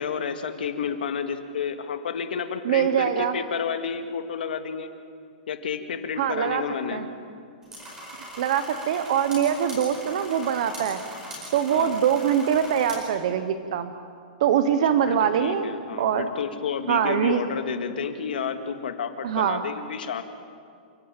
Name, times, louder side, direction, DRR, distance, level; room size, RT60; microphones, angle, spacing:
voice 1, 0.0-4.9 5.5-7.0 11.7-11.9 15.1-20.2, left 7 dB, 85° left, 8 dB, 2.0 m, -30 dB
voice 2, 2.6-3.4 6.2-6.6 6.9-7.1 8.4-11.0 11.5-13.9 14.4-16.3 16.9-17.4 19.2-19.6, right 9 dB, 45° right, 10 dB, 0.8 m, -23 dB
sound 1, 7.6-12.9, right 1 dB, 10° right, 4.6 m, -40 dB
28.5 x 11.5 x 8.9 m, 2.3 s
supercardioid pair, 180°, 5 cm